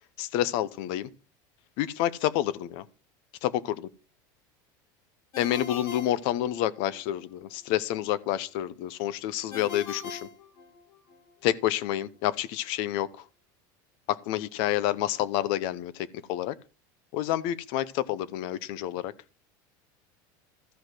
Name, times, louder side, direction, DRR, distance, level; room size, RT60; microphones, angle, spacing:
voice 1, 0.2-1.1 1.8-2.9 3.4-3.9 5.4-10.2 11.4-13.2 14.1-16.5 17.1-19.1, left 13 dB, 55° left, 0.8 m, -29 dB
Ringtone, 5.3-7.0 9.5-11.2, left 4 dB, 35° left, 2.2 m, -41 dB
13.5 x 5.2 x 6.1 m
cardioid pair, 170°, 10 cm